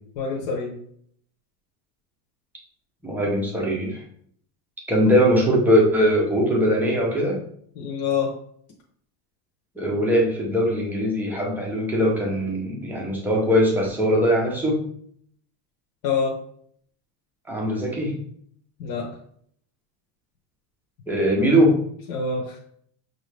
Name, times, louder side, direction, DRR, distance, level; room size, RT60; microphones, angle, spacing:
voice 1, 0.2-0.7 7.7-8.3 16.0-16.3 18.8-19.1 22.1-22.6, left 5 dB, 65° left, -1 dB, 1.0 m, -26 dB
voice 2, 3.0-4.0 4.9-7.4 9.8-14.8 17.5-18.1 21.1-21.8, equal, 5° right, -2 dB, 0.5 m, -21 dB
6.1 x 2.7 x 3.2 m, 0.65 s
cardioid pair, 175°, 43 cm